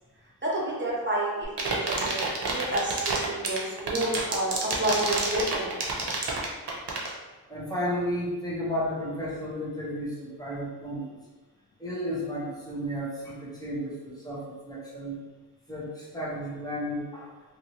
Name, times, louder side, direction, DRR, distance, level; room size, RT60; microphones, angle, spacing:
voice 1, 0.4-5.7, right 1 dB, 30° right, -6 dB, 1.1 m, -30 dB
sound 1, 1.4-7.1, right 3 dB, 90° right, 0.6 m, -28 dB
voice 2, 7.5-11.1 11.8-15.2 15.7-17.3, equal, 10° left, -7 dB, 1.1 m, -33 dB
2.8 x 2.7 x 2.9 m, 1.3 s
wide cardioid pair, 40°, 39 cm